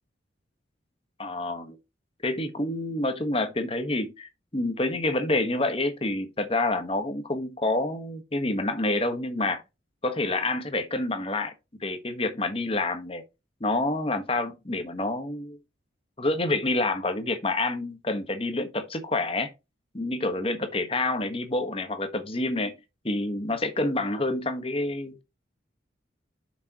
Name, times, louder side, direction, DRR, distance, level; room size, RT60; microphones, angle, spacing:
voice 1, 1.2-1.8 2.2-9.6 10.0-11.5 11.8-13.2 13.6-15.6 16.2-19.5 19.9-22.7 23.0-25.2, left 2 dB, 30° left, 1.3 m, -28 dB
8.5 x 6.3 x 3.0 m
head